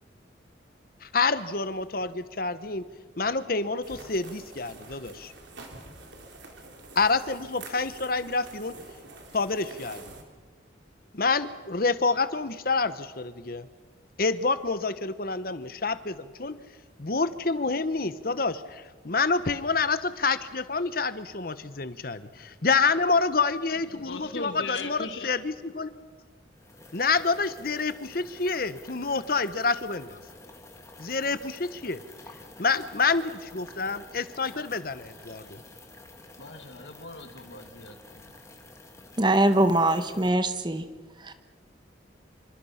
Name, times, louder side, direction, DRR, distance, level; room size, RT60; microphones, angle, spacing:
voice 1, 1.0-2.8 3.2-5.3 6.9-8.7 9.3-10.0 11.1-13.7 14.2-16.6 17.0-25.9 26.9-30.2 31.0-32.0 32.6-35.6, left 4 dB, 50° left, 1.1 m, -28 dB
sound 1, 3.8-10.2, right 3 dB, 80° right, 3.6 m, -47 dB
voice 2, 23.9-25.3 36.4-38.3, left 3 dB, 80° left, 2.2 m, -39 dB
sound 2, 26.5-40.3, left 2 dB, 15° left, 2.3 m, -50 dB
voice 3, 39.2-40.9 41.2-41.3, right 1 dB, 25° right, 1.2 m, -22 dB
26.5 x 25.0 x 5.8 m
head